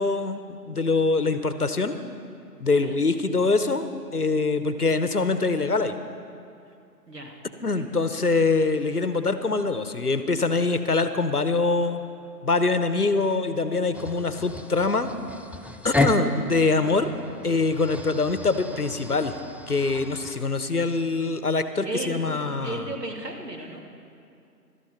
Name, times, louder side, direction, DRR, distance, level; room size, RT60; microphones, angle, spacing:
voice 1, 0.0-2.0 2.6-6.0 7.6-12.0 12.4-15.1 15.8-17.1 17.4-19.3 19.7-22.8, left 3 dB, 65° left, 11 dB, 0.9 m, -24 dB
voice 2, 2.6-3.2 7.1-8.0 16.0-16.4 21.8-23.8, right 2 dB, 70° right, 1 dB, 2.4 m, -36 dB
sound 1, 13.9-20.4, left 2 dB, 5° right, 0.4 m, -32 dB
13.0 x 12.0 x 5.6 m, 2.5 s
figure-of-eight pair, 175°, 50 cm